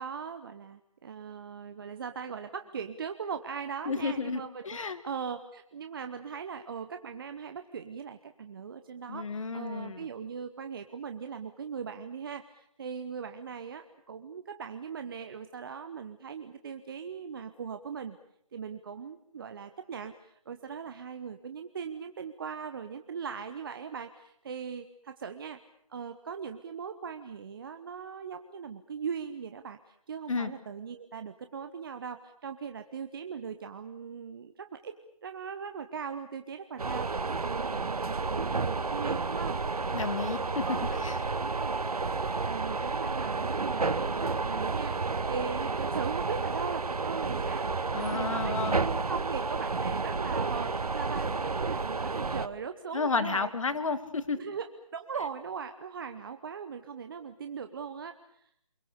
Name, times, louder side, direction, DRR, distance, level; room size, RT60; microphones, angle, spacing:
voice 1, 0.0-4.6 5.0-18.2 18.5-25.6 25.9-35.0 35.2-39.6 40.6-41.0 41.4-41.8 42.4-53.5 54.4-58.5, right 6 dB, 40° right, 8 dB, 1.1 m, -39 dB
voice 2, 3.9-5.0 9.1-10.1 30.3-30.5 39.9-40.7 40.9-41.2 47.9-48.9 52.9-54.4, left 4 dB, 60° left, 11 dB, 2.2 m, -32 dB
sound 1, 36.8-52.5, right 4 dB, 85° right, 1.1 m, -31 dB
28.5 x 22.5 x 6.9 m, 0.72 s
figure-of-eight pair, 160°, 19 cm